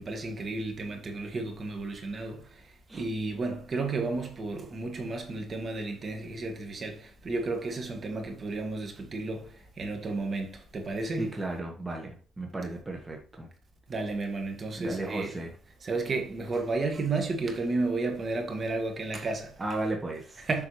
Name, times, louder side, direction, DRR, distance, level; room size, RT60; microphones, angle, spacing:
voice 1, 0.0-11.3 13.9-15.3 15.8-19.6 20.4-20.7, right 3 dB, 40° right, 1.7 m, -32 dB
voice 2, 11.2-13.5 14.8-15.5 19.6-20.5, right 2 dB, 20° right, 1.5 m, -34 dB
7.4 x 5.9 x 3.2 m
cardioid pair, 105°, 0 cm